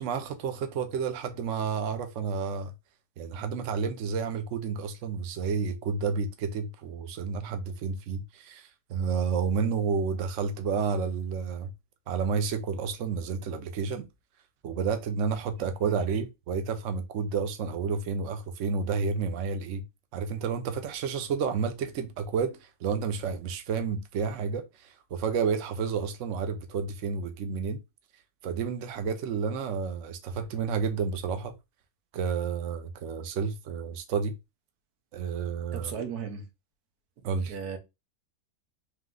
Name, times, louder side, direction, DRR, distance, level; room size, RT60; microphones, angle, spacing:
voice 1, 0.0-2.7 3.2-11.7 12.1-14.0 14.6-19.8 20.1-27.8 28.4-31.5 32.1-34.4 35.1-35.9 37.2-37.5, right 5 dB, 60° right, 1.0 m, -30 dB
voice 2, 35.7-36.5 37.5-37.8, right 6 dB, 90° right, 1.4 m, -35 dB
3.4 x 3.1 x 3.7 m
omnidirectional pair, 1.6 m